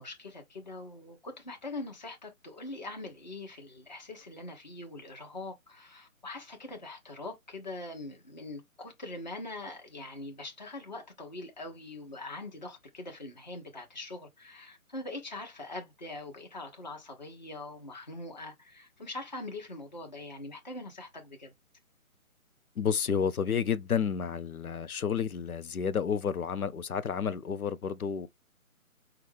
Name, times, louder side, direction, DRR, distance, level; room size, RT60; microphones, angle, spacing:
voice 1, 0.0-21.5, left 2 dB, 30° left, 1.2 m, -43 dB
voice 2, 22.8-28.3, left 7 dB, 80° left, 0.9 m, -30 dB
5.9 x 2.4 x 3.3 m
hypercardioid pair, 180°, 43 cm